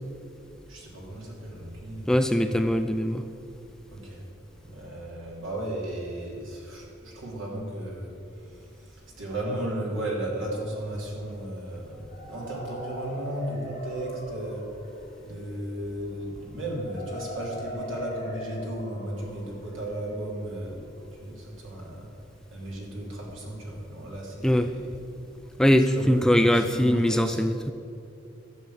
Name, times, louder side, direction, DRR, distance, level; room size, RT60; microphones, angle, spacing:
voice 1, 0.7-2.1 3.9-4.2 4.6-14.7 15.2-22.1 22.5-25.0 25.9-27.4, right 1 dB, 70° right, -3 dB, 3.1 m, -35 dB
voice 2, 2.1-3.2 24.4-24.7 25.6-27.7, equal, 5° left, 7 dB, 0.3 m, -22 dB
sound 1, 11.9-21.8, left 1 dB, 30° left, 2.0 m, -41 dB
12.5 x 7.3 x 7.8 m, 2.6 s
head